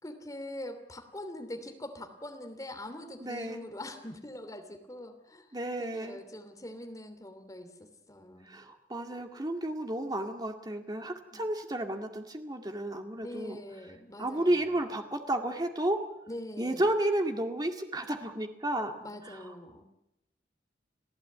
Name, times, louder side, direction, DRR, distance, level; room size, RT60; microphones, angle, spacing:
voice 1, 0.0-5.5 5.8-8.6 11.3-11.4 13.2-14.7 16.3-16.8 19.0-19.8, left 1 dB, 20° left, 6 dB, 2.9 m, -43 dB
voice 2, 3.2-3.6 5.5-6.2 8.4-13.6 14.2-16.0 16.6-19.0 19.2-19.4, right 1 dB, 20° right, 4 dB, 2.1 m, -32 dB
27.5 x 16.5 x 8.7 m, 0.86 s
head